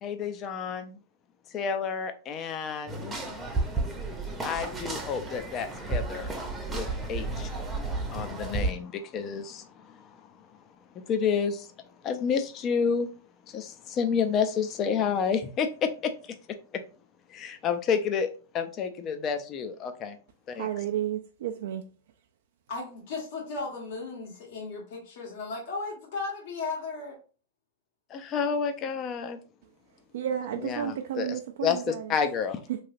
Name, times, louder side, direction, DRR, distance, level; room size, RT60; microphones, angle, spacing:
voice 1, 0.0-1.0 1.5-3.2 4.4-6.3 6.7-7.5 8.1-10.3 11.1-11.7 12.0-13.1 13.5-16.1 17.3-20.2 20.5-20.7 28.1-29.4 30.6-31.3 31.6-32.6, left 6 dB, 35° left, 0.5 m, -30 dB
sound 1, 2.9-8.7, right 3 dB, 15° right, 0.7 m, -32 dB
voice 2, 20.5-21.8 30.1-32.1 32.7-32.8, right 10 dB, 70° right, 0.3 m, -32 dB
voice 3, 22.7-27.2, left 3 dB, 65° left, 1.5 m, -36 dB
3.1 x 2.7 x 2.5 m
hypercardioid pair, 130°, 0 cm